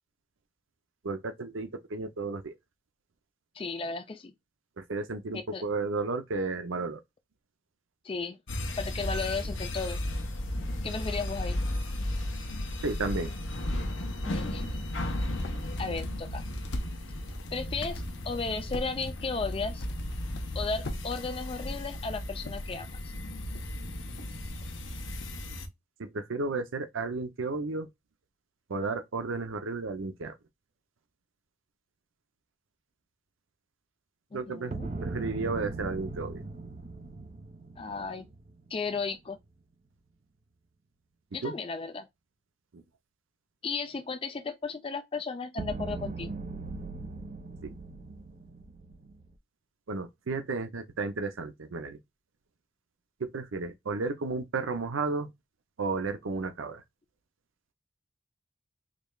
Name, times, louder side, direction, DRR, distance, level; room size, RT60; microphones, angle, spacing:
voice 1, 1.0-2.5 4.8-7.0 12.8-13.3 26.0-27.9 28.7-30.4 34.3-34.8 35.0-36.4 41.4-41.5 42.7-42.8 47.6-47.7 49.9-52.0 53.2-55.3 55.8-56.8, right 3 dB, 85° right, 0.6 m, -33 dB
voice 2, 3.5-4.3 5.5-5.6 8.0-8.4 8.8-10.0 10.8-11.6 14.2-14.8 15.8-16.4 17.5-19.9 20.5-23.1 34.3-34.9 37.8-38.3 38.7-39.4 41.3-42.1 43.6-46.3, left 4 dB, 25° left, 0.3 m, -35 dB
sound 1, 8.5-25.7, left 1 dB, 80° left, 1.0 m, -35 dB
sound 2, 15.1-25.6, left 1 dB, 60° left, 0.7 m, -44 dB
sound 3, 34.7-39.0 45.6-49.3, right 3 dB, 35° right, 0.4 m, -39 dB
5.0 x 3.2 x 2.2 m
head